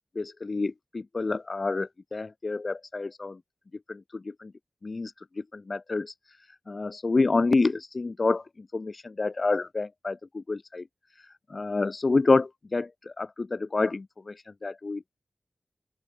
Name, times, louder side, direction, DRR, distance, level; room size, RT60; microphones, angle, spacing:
voice 1, 0.2-3.4 3.9-4.5 4.8-5.1 5.5-6.1 6.7-8.4 8.7-10.8 11.5-15.0, left 3 dB, 45° left, 1.9 m, -28 dB
open air
wide cardioid pair, 80°, 0 cm